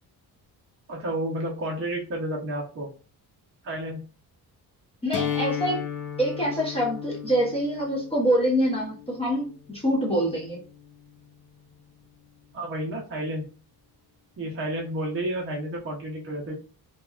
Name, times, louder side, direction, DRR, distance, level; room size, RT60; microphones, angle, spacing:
voice 1, 0.9-2.9 3.6-4.0 12.5-13.4 14.4-16.5, right 1 dB, 35° right, -2 dB, 0.7 m, -31 dB
voice 2, 5.0-5.8 6.2-10.6, equal, 15° left, -4 dB, 0.7 m, -25 dB
sound 1, 5.1-11.1, left 8 dB, 50° left, 0.7 m, -35 dB
2.9 x 2.2 x 2.3 m, 0.36 s
cardioid pair, 140°, 40 cm